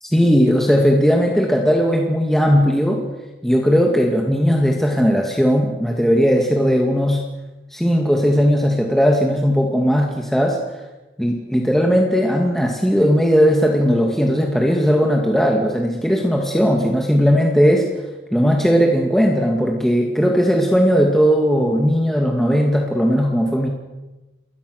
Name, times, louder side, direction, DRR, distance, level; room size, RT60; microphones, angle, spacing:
voice 1, 0.1-3.0 3.4-7.2 7.7-10.6 11.2-17.9 18.3-23.7, equal, ahead, 1 dB, 2.3 m, -17 dB
29.5 x 21.5 x 6.7 m, 1.1 s
head